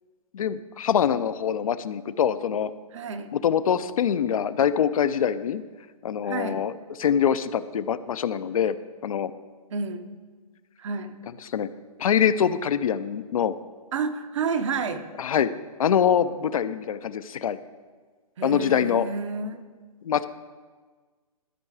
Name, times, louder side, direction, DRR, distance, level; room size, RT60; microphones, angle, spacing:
voice 1, 0.3-2.7 3.3-5.6 6.0-6.7 7.0-8.8 9.0-9.3 11.5-11.7 12.0-13.5 15.2-15.5 15.8-17.6 18.4-19.1 20.0-20.3, left 8 dB, 60° left, 13 dB, 0.5 m, -24 dB
voice 2, 2.9-3.3 6.2-6.7 9.7-10.0 10.8-11.1 13.9-15.1 18.4-19.6, right 5 dB, 50° right, 9 dB, 0.8 m, -30 dB
12.5 x 4.5 x 4.8 m, 1.4 s
hypercardioid pair, 145°, 20 cm